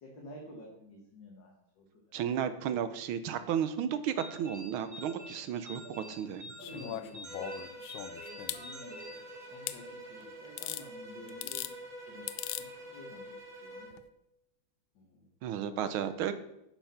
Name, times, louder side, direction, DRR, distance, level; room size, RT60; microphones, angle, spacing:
voice 1, 0.0-2.1 6.6-7.8 8.2-9.1 9.5-11.7 12.1-14.0 15.0-15.3, left 1 dB, 60° left, -2 dB, 2.2 m, -51 dB
voice 2, 2.1-6.5 15.4-16.4, right 9 dB, 80° right, 11 dB, 1.6 m, -33 dB
sound 1, 4.2-9.9, equal, 30° right, 1.9 m, -48 dB
sound 2, 6.6-8.6 9.7-9.8 10.6-10.8 11.3-11.7 12.3-12.7 13.9-14.0, left 13 dB, 75° left, 1.3 m, -39 dB
Bowed string instrument, 7.2-14.0, right 1 dB, 45° right, 1.9 m, -46 dB
10.0 x 5.9 x 5.7 m, 0.84 s
omnidirectional pair, 2.3 m